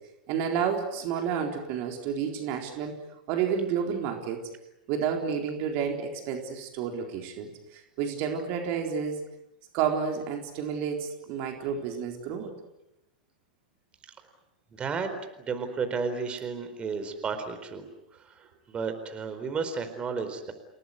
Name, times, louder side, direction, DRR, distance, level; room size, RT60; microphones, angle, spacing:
voice 1, 0.3-2.9 3.3-4.4 4.9-9.2 9.7-12.5, right 7 dB, 50° right, 3 dB, 4.0 m, -30 dB
voice 2, 14.7-15.1 15.4-17.9 18.1-20.5, right 5 dB, 25° right, 7 dB, 4.4 m, -33 dB
29.5 x 18.5 x 9.7 m, 0.90 s
hypercardioid pair, 95°, 4 cm